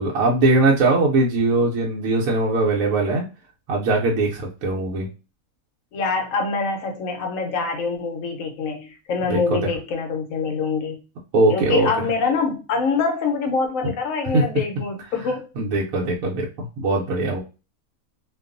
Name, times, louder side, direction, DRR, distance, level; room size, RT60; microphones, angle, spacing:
voice 1, 0.0-3.2 3.7-5.1 9.3-9.6 11.3-11.9 14.3-14.4 15.6-17.4, right 2 dB, 75° right, -3 dB, 1.0 m, -20 dB
voice 2, 5.9-11.0 11.5-15.5, left 4 dB, 70° left, 3 dB, 1.0 m, -25 dB
2.5 x 2.3 x 2.4 m, 0.30 s
omnidirectional pair, 1.5 m